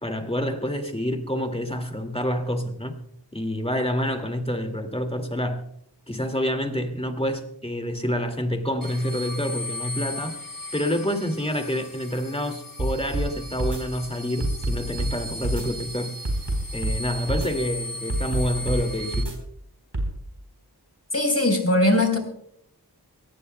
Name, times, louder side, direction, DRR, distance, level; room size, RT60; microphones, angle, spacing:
voice 1, 0.0-3.0 3.3-5.6 6.1-10.3 10.7-16.2 16.7-19.4, equal, 15° left, 5 dB, 2.1 m, -28 dB
sound 1, 8.8-19.2, left 1 dB, 55° left, 1.7 m, -37 dB
sound 2, 12.8-13.3 13.6-13.8 14.4-15.1 15.4-15.7 16.3-17.0 17.3-17.5 18.1-18.8 19.1-19.3 19.9-20.1, right 1 dB, 85° right, 3.9 m, -26 dB
voice 2, 21.1-22.2, left 1 dB, 35° left, 4 dB, 3.9 m, -20 dB
22.5 x 18.0 x 2.2 m, 0.71 s
wide cardioid pair, 40°, 41 cm